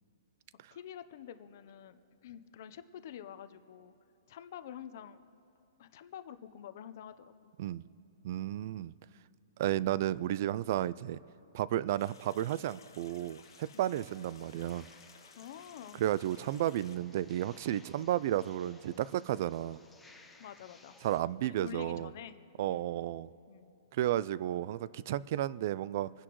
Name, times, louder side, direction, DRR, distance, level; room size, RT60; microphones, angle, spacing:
voice 1, 0.7-3.9 4.3-5.2 5.8-7.5 13.7-13.9 15.4-16.0 20.4-21.0 21.4-22.8 23.5-23.7, left 9 dB, 45° left, 12 dB, 0.7 m, -48 dB
voice 2, 8.2-8.9 9.6-11.2 11.5-14.9 16.0-19.8 21.0-22.1 22.6-23.3 23.9-26.1, right 12 dB, 40° right, 20 dB, 0.3 m, -32 dB
sound 1, 12.0-17.0, left 6 dB, 85° left, 1.4 m, -58 dB
sound 2, 13.4-21.2, left 3 dB, 5° left, 0.7 m, -60 dB
28.0 x 9.9 x 3.1 m, 2.7 s
hypercardioid pair, 165°, 2 cm